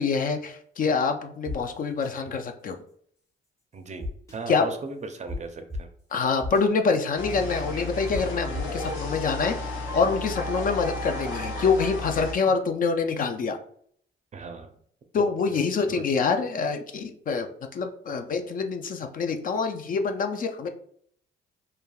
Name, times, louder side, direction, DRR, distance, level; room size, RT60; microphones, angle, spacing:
voice 1, 0.0-2.8 4.5-4.6 6.1-9.6 9.9-13.6 15.1-20.7, left 5 dB, 45° left, 6 dB, 0.4 m, -26 dB
sound 1, 1.5-1.6 2.0-2.1 4.0-4.4 5.3-5.4 5.7-5.8 6.4-6.6 8.1-8.2 8.5-8.9, left 2 dB, 15° left, 0.8 m, -32 dB
voice 2, 3.7-5.9 9.5-9.6 14.3-14.7 15.8-16.0, right 3 dB, 35° right, 7 dB, 0.4 m, -37 dB
sound 2, 7.2-12.3, left 1 dB, 75° left, 1.0 m, -33 dB
3.2 x 2.3 x 2.3 m, 0.63 s
cardioid pair, 90°, 20 cm